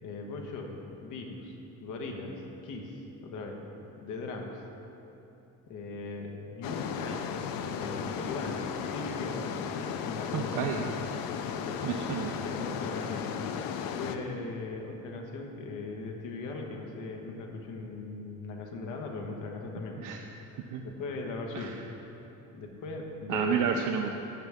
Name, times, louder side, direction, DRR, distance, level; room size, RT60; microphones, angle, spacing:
voice 1, 0.0-3.6 4.0-4.6 5.7-9.5 9.8-10.9 11.5-12.0 12.4-20.0 20.8-21.7 22.5-23.6, left 3 dB, 65° left, 1 dB, 1.4 m, -39 dB
sound 1, 6.6-14.2, left 7 dB, 90° left, 0.7 m, -35 dB
voice 2, 10.3-10.8 11.8-12.4 20.0-20.2 20.7-20.8 21.5-21.7 23.3-24.2, right 7 dB, 70° right, 3 dB, 0.6 m, -30 dB
14.0 x 8.0 x 3.6 m, 2.9 s
cardioid pair, 170°, 33 cm